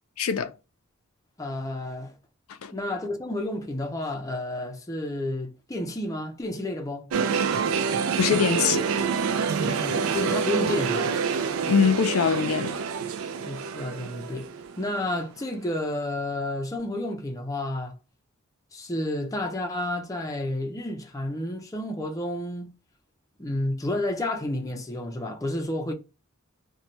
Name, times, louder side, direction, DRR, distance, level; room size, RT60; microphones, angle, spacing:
voice 1, 0.2-0.5 2.6-2.7 8.2-8.9 11.7-12.8, left 6 dB, 85° left, 0.4 m, -23 dB
voice 2, 1.4-2.1 2.7-7.1 9.6-11.2 13.4-14.5 14.8-18.0 18.7-22.7 23.4-25.9, left 1 dB, 15° left, 0.5 m, -31 dB
sound 1, 7.1-15.1 15.5-15.6, right 6 dB, 75° right, 0.4 m, -27 dB
2.7 x 2.2 x 2.9 m
head